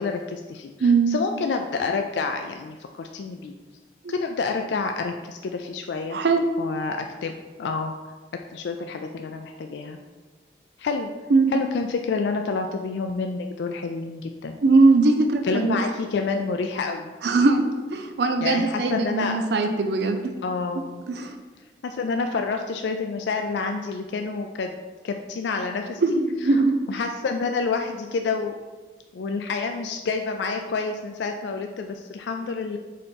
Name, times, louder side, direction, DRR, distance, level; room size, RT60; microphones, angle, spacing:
voice 1, 0.0-3.5 4.1-6.2 6.6-7.3 7.6-7.9 8.5-10.0 10.8-11.1 11.5-14.5 15.4-17.1 18.4-19.4 20.4-21.0 21.8-24.7 25.0-26.0 26.4-26.6 26.9-28.5 29.1-32.8, left 4 dB, 80° left, 5 dB, 0.4 m, -28 dB
voice 2, 0.8-1.2 6.1-6.4 11.3-11.5 14.6-15.8 17.2-20.2 21.1-21.3 26.0-26.7, right 3 dB, 70° right, 5 dB, 0.5 m, -20 dB
4.3 x 4.2 x 5.2 m, 1.3 s
head